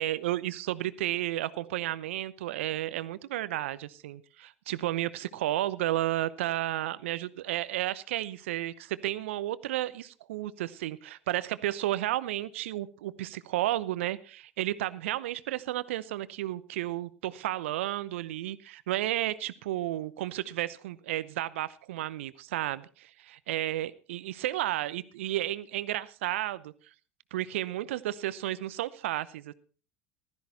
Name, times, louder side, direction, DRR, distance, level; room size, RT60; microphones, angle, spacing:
voice 1, 0.0-26.7 27.3-29.5, right 14 dB, 75° right, 17 dB, 0.8 m, -32 dB
15.5 x 13.0 x 4.1 m, 0.39 s
hypercardioid pair, 75°, 7 cm